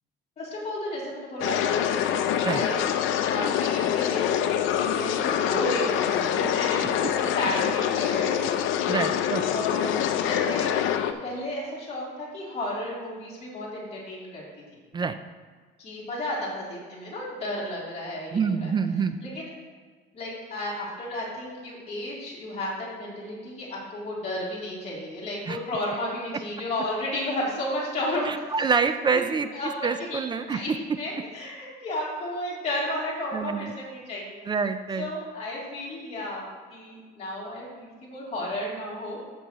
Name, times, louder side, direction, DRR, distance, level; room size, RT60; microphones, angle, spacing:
voice 1, 0.4-4.4 4.7-8.6 9.5-9.9 10.2-10.7 11.0-14.4 15.8-18.7 19.2-19.5 20.1-28.3 28.6-28.7 29.1-29.2 29.5-29.7 30.1-30.2 30.5-30.7 30.9-34.6 35.0-39.2, left 1 dB, 30° left, -7 dB, 2.9 m, -33 dB
sound 1, 1.4-11.1, left 10 dB, 75° left, 0.6 m, -25 dB
voice 2, 8.9-9.4 14.9-15.2 18.3-19.2 25.5-25.6 28.2-29.5 29.8-30.6 33.3-33.7 34.5-35.1, right 5 dB, 20° right, 9 dB, 0.3 m, -26 dB
13.5 x 6.3 x 3.0 m, 1.5 s
cardioid pair, 155°, 20 cm